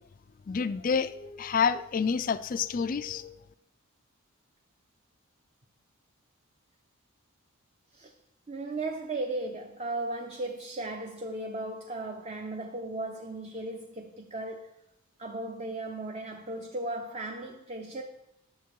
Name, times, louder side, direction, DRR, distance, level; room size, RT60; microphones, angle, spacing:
voice 1, 0.5-3.4, left 6 dB, 40° left, 0.3 m, -28 dB
voice 2, 8.5-14.8 15.2-18.0, right 2 dB, 30° right, 0.6 m, -36 dB
10.0 x 6.9 x 4.7 m
head